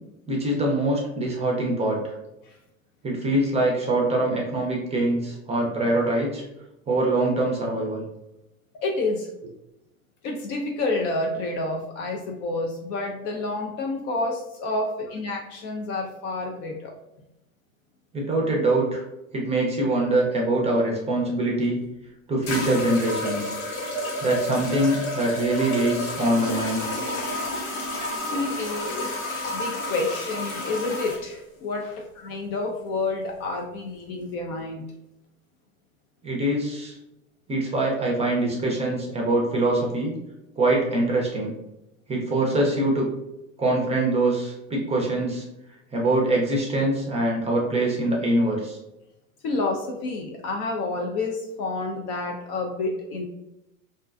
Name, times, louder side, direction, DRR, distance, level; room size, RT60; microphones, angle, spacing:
voice 1, 0.3-2.1 3.0-6.4 6.9-8.0 18.1-19.0 19.3-21.8 22.3-23.6 24.2-26.8 36.2-37.0 37.5-40.1 40.6-41.5 42.1-43.1 43.6-45.4 45.9-48.8, right 1 dB, 15° right, -2 dB, 0.6 m, -24 dB
voice 2, 8.7-9.3 10.2-16.9 28.3-34.9 49.4-53.3, left 2 dB, 40° left, 1 dB, 0.4 m, -29 dB
sound 1, 21.6-21.7 22.5-31.2, left 1 dB, 80° left, 1.0 m, -30 dB
2.4 x 2.2 x 2.4 m, 0.88 s
hypercardioid pair, 95°, 42 cm